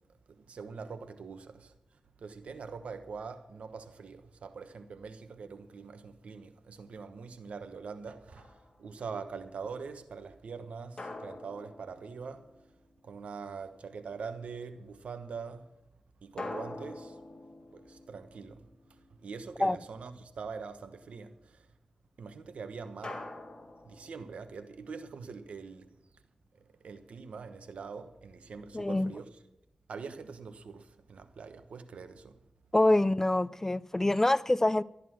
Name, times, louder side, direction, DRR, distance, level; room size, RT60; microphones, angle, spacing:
voice 1, 0.3-1.7 2.2-12.5 13.0-15.7 16.2-17.2 17.7-21.7 22.2-23.3 23.8-25.9 26.5-29.4 29.9-32.4, right 5 dB, 85° right, 1.1 m, -43 dB
sound 1, 8.3-8.9 11.0-12.8 16.4-19.0 23.0-24.7, left 2 dB, 40° left, 2.8 m, -45 dB
voice 2, 28.7-29.1 32.7-34.8, left 1 dB, 20° left, 0.4 m, -25 dB
13.0 x 11.0 x 6.2 m
cardioid pair, 60°, 2 cm